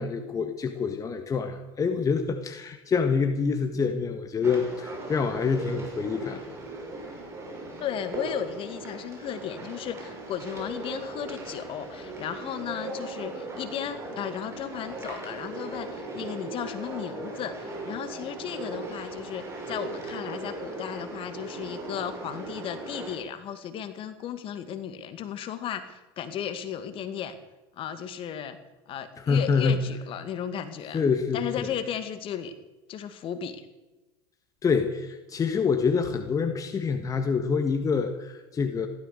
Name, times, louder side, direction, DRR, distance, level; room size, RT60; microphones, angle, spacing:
voice 1, 0.0-6.4 29.2-29.8 30.9-31.4 34.6-38.9, left 5 dB, 25° left, 6 dB, 1.6 m, -26 dB
sound 1, 4.4-23.2, right 2 dB, 20° right, 6.0 m, -38 dB
voice 2, 7.8-27.4 27.7-28.6 28.9-31.0 31.3-32.5 32.9-33.7, left 9 dB, 45° left, 10 dB, 2.1 m, -35 dB
15.5 x 13.0 x 6.7 m, 1.1 s
hypercardioid pair, 90°, 13 cm